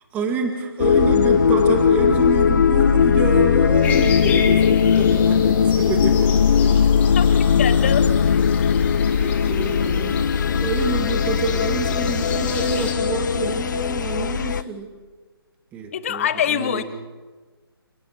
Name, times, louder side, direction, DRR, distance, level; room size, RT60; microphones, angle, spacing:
voice 1, 0.1-6.8 7.3-7.4 9.1-14.9 15.7-16.8, right 3 dB, 10° right, 4 dB, 2.0 m, -28 dB
sound 1, 0.8-14.6, left 7 dB, 50° left, 0.8 m, -18 dB
sound 2, 3.8-12.9, left 6 dB, 10° left, 2.7 m, -33 dB
voice 2, 7.6-8.5 15.9-16.8, left 9 dB, 35° left, 13 dB, 1.2 m, -24 dB
28.5 x 18.5 x 6.7 m, 1.4 s
hypercardioid pair, 160°, 13 cm